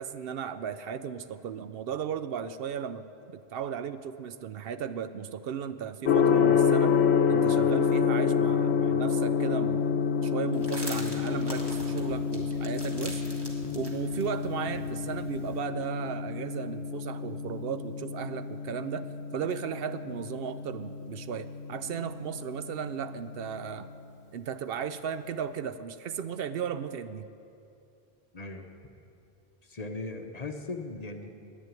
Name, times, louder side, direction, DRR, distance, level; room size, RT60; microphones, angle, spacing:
voice 1, 0.0-7.0 7.3-13.2 13.7-19.1 19.3-23.9 24.3-27.3, right 7 dB, 70° right, 12 dB, 0.7 m, -35 dB
Gong, 6.1-23.9, left 6 dB, 90° left, 0.9 m, -28 dB
sound 1, 10.5-15.6, right 1 dB, 20° right, 1.8 m, -44 dB
voice 2, 28.3-28.7 29.6-31.3, left 3 dB, 40° left, 6 dB, 0.8 m, -38 dB
11.0 x 9.7 x 9.0 m, 2.7 s
omnidirectional pair, 1.1 m